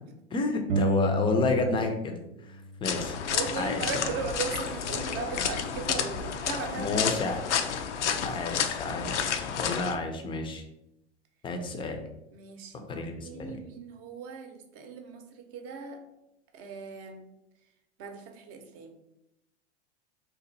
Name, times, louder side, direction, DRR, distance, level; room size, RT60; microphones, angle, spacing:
voice 1, 0.3-2.2 2.8-3.2 3.6-3.8 6.8-7.4 8.2-10.6 11.4-12.0 12.9-13.6, left 3 dB, 15° left, 5 dB, 0.5 m, -30 dB
sound 1, 0.7-2.2 2.5-4.2, equal, 80° right, 0.5 m, -32 dB
sound 2, 2.8-10.0, left 7 dB, 85° left, 0.5 m, -31 dB
voice 2, 3.3-7.4 12.3-12.8 13.2-16.0 16.5-17.3 18.0-18.9, right 5 dB, 40° right, 5 dB, 0.7 m, -37 dB
2.9 x 2.4 x 3.8 m, 0.87 s
hypercardioid pair, 95°, 34 cm